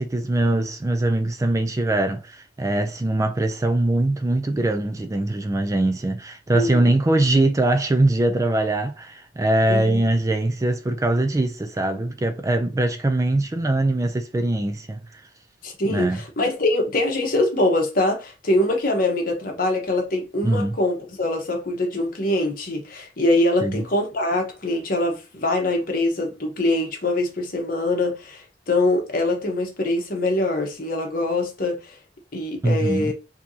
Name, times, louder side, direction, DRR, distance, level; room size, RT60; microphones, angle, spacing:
voice 1, 0.0-15.0 15.9-16.2 20.4-20.7 23.6-23.8 32.6-33.1, right 2 dB, 20° right, 0.4 m, -22 dB
voice 2, 6.5-6.9 9.7-10.1 15.6-31.9 32.3-33.1, left 2 dB, 55° left, 1.1 m, -23 dB
4.4 x 2.8 x 2.7 m
head